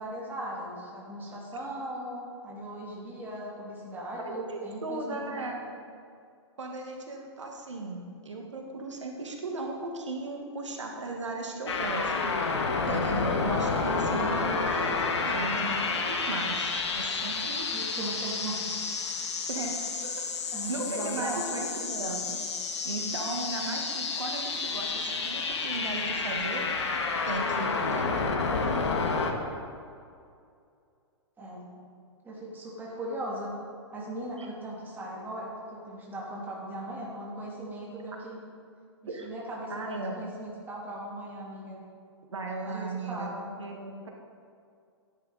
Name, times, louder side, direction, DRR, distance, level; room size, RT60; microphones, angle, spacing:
voice 1, 0.0-5.5 17.7-18.8 20.5-21.6 31.4-31.7 32.2-33.5 33.9-38.4 39.2-41.8 42.7-43.5, right 1 dB, 15° right, -5 dB, 3.2 m, -38 dB
voice 2, 4.2-5.6 6.6-17.7 19.5-22.4 22.8-26.6 27.3-28.4 34.4-34.5 39.1-39.3 39.7-40.2 42.3-43.3 43.6-44.1, right 2 dB, 80° right, 1 dB, 1.7 m, -36 dB
sound 1, 11.7-29.3, left 4 dB, 70° left, 1.6 m, -30 dB
13.0 x 11.0 x 4.1 m, 2.3 s
hypercardioid pair, 120°, 15 cm